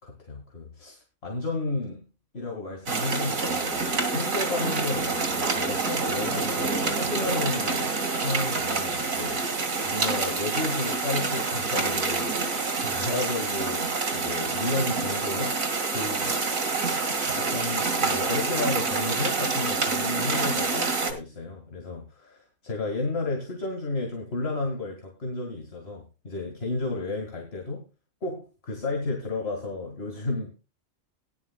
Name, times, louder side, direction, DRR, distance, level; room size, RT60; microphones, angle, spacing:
voice 1, 0.0-2.1 2.3-7.9 8.2-16.4 17.1-27.8 28.2-30.5, left 2 dB, 50° left, 2 dB, 2.2 m, -32 dB
sound 1, 2.9-21.1, right 4 dB, 90° right, 2.6 m, -27 dB
18.5 x 11.0 x 2.2 m, 0.30 s
omnidirectional pair, 1.4 m